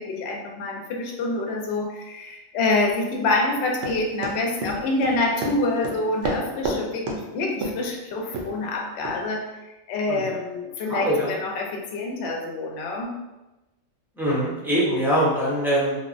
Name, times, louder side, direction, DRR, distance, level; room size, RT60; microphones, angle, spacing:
voice 1, 0.0-9.5 9.9-13.1, left 2 dB, 65° left, 1 dB, 0.7 m, -26 dB
Run, 3.8-6.8 7.1-7.2 7.6-7.9 8.3-8.5 9.0-9.2, right 2 dB, 70° right, 0.9 m, -29 dB
voice 2, 10.9-11.3 14.2-16.0, equal, 5° right, -7 dB, 0.4 m, -23 dB
3.3 x 2.0 x 2.5 m, 1.0 s
omnidirectional pair, 1.4 m